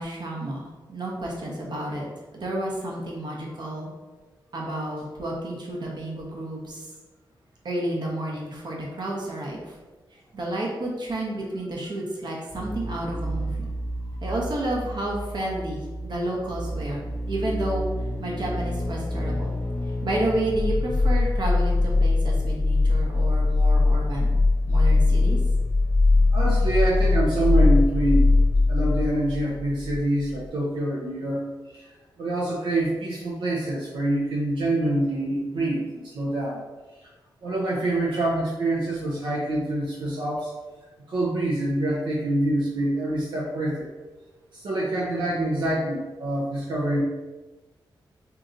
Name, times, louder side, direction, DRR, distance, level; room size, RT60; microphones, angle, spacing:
voice 1, 0.0-2.1 2.3-3.9 4.5-6.9 7.6-9.7 10.3-13.7 14.2-17.9 18.2-19.5 20.0-24.4 24.7-25.4, right 1 dB, 60° right, -2 dB, 0.8 m, -30 dB
sound 1, 12.5-30.0 30.3-30.4, left 2 dB, 20° left, 0.7 m, -23 dB
voice 2, 26.3-28.3 28.7-31.4 31.7-31.9 32.2-36.6 37.4-40.5 41.1-43.9 44.5-47.0, right 1 dB, 85° right, -4 dB, 0.6 m, -26 dB
3.9 x 2.8 x 2.5 m, 1.2 s
wide cardioid pair, 115°, 8 cm